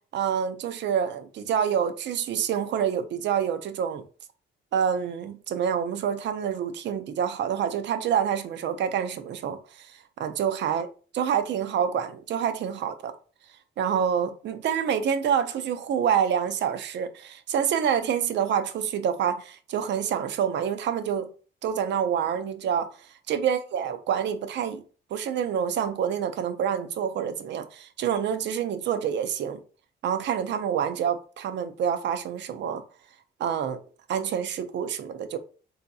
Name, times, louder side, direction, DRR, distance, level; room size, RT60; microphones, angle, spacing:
voice 1, 0.1-4.0 4.7-9.9 10.2-10.9 11.1-13.1 13.8-21.3 21.6-22.9 23.3-24.8 25.1-29.6 30.0-32.8 33.4-33.8 34.1-35.4, right 8 dB, 65° right, 0.5 m, -27 dB
3.7 x 2.7 x 2.2 m
cardioid pair, 90°, 20 cm